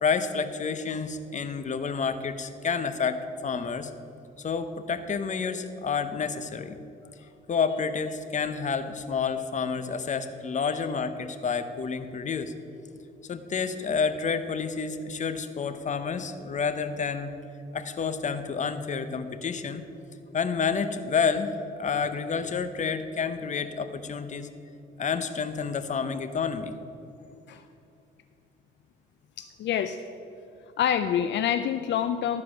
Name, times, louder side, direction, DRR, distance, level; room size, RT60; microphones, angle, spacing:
voice 1, 0.0-3.9 4.4-6.8 7.5-12.5 13.3-17.3 17.7-19.8 20.3-24.5 25.0-26.7, left 5 dB, 40° left, 9 dB, 0.7 m, -29 dB
voice 2, 29.4-30.0 30.8-32.4, left 9 dB, 65° left, 9 dB, 0.4 m, -27 dB
12.5 x 4.8 x 6.0 m, 2.7 s
cardioid pair, 90°, 20 cm